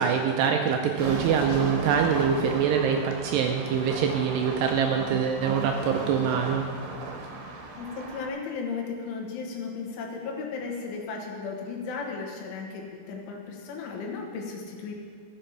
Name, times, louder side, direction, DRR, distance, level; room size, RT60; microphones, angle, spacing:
voice 1, 0.0-6.6, right 7 dB, 80° right, 3 dB, 2.5 m, -24 dB
sound 1, 1.0-8.3, right 3 dB, 65° right, 2.7 m, -36 dB
voice 2, 7.8-14.9, left 4 dB, 85° left, 0 dB, 3.9 m, -35 dB
14.0 x 7.0 x 5.7 m, 2.1 s
omnidirectional pair, 5.3 m